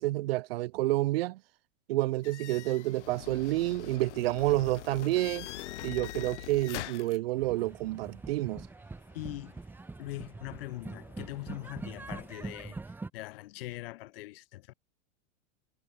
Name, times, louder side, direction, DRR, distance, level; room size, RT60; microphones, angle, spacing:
voice 1, 0.0-1.4 1.9-5.5 5.8-8.7, right 17 dB, 55° right, 0.7 m, -29 dB
sound 1, 2.2-7.2, left 15 dB, 70° left, 1.5 m, -42 dB
sound 2, 3.4-12.6, left 14 dB, 20° left, 4.8 m, -62 dB
sound 3, 7.3-13.1, right 3 dB, 5° right, 3.0 m, -44 dB
voice 2, 9.1-9.6 10.0-12.8 13.1-14.7, left 18 dB, 50° left, 3.5 m, -42 dB
supercardioid pair, 180°, 37 cm